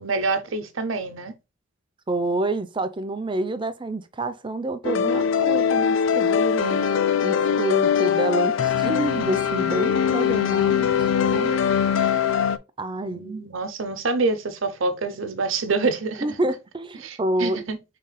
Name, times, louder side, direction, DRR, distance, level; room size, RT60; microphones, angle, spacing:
voice 1, 0.0-1.3 13.0-16.2 17.0-17.8, right 3 dB, 80° right, 0.8 m, -26 dB
voice 2, 2.1-6.8 7.2-11.5 12.8-13.4 16.2-17.6, right 1 dB, 25° right, 0.5 m, -28 dB
sound 1, 4.8-12.6, left 7 dB, 65° left, 0.4 m, -21 dB
5.7 x 3.8 x 2.2 m
head